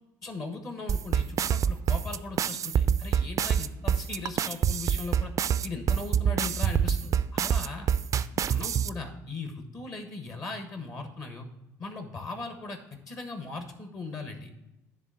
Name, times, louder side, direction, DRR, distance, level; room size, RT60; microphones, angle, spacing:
voice 1, 0.2-5.3 5.6-7.9 8.3-11.5 11.8-14.5, left 3 dB, 45° left, 5 dB, 1.3 m, -38 dB
sound 1, 0.9-8.9, right 8 dB, 40° right, 0.4 m, -25 dB
10.0 x 3.4 x 6.3 m, 0.91 s
hypercardioid pair, 70°, 8 cm